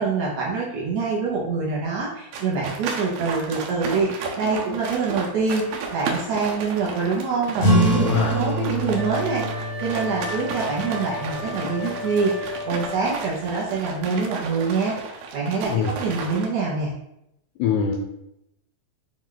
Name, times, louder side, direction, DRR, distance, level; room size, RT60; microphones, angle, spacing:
voice 1, 0.0-15.0 15.3-16.9, right 4 dB, 75° right, -4 dB, 1.7 m, -25 dB
sound 1, 2.3-16.5, right 5 dB, 90° right, 2.4 m, -34 dB
sound 2, 7.6-12.7, equal, 65° left, 0.8 m, -26 dB
voice 2, 7.9-8.4 15.7-15.9 17.6-17.9, left 7 dB, 85° left, 1 dB, 1.8 m, -23 dB
Wind instrument woodwind instrument, 8.9-13.4, left 3 dB, 45° right, 1.2 m, -35 dB
6.2 x 2.3 x 3.7 m, 0.82 s
omnidirectional pair, 3.9 m